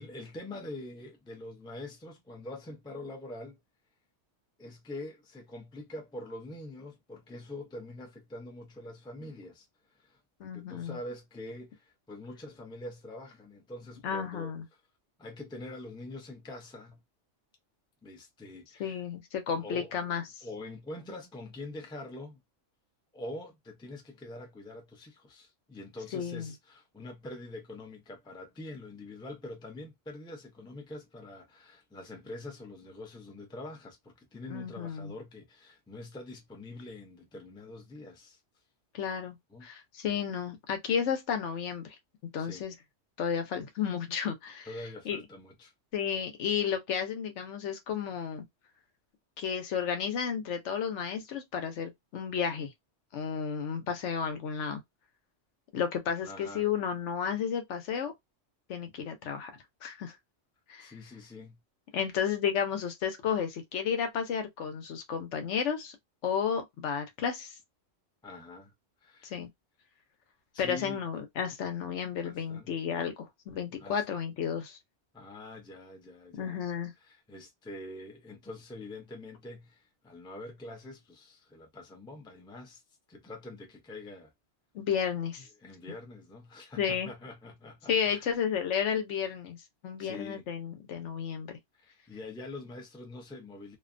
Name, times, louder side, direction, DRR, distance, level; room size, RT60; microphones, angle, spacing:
voice 1, 0.0-3.6 4.6-9.7 9.9-10.2 10.5-14.5 15.2-17.0 18.0-19.0 19.5-19.9 20.4-22.4 23.1-38.4 39.5-39.7 42.4-42.7 44.7-45.7 56.2-56.7 60.8-61.6 68.2-68.7 69.0-69.3 70.5-71.0 72.2-72.7 73.8-74.0 75.1-76.6 77.0-82.8 83.1-84.3 85.6-88.3 90.0-90.5 91.7-93.8, left 2 dB, 5° left, 0.4 m, -44 dB
voice 2, 10.4-11.0 14.0-14.6 18.8-20.4 26.1-26.5 34.5-35.1 38.9-39.4 39.6-42.0 42.3-42.7 43.2-44.7 45.0-45.2 45.9-48.4 49.4-52.7 53.1-54.8 55.7-58.1 58.7-59.5 59.8-60.1 60.7-60.9 61.9-66.0 66.2-67.5 69.2-69.5 70.6-74.8 76.4-76.9 84.7-85.5 86.8-87.1 87.9-89.6 89.8-91.5, left 7 dB, 75° left, 1.0 m, -32 dB
2.5 x 2.2 x 2.5 m
omnidirectional pair, 1.2 m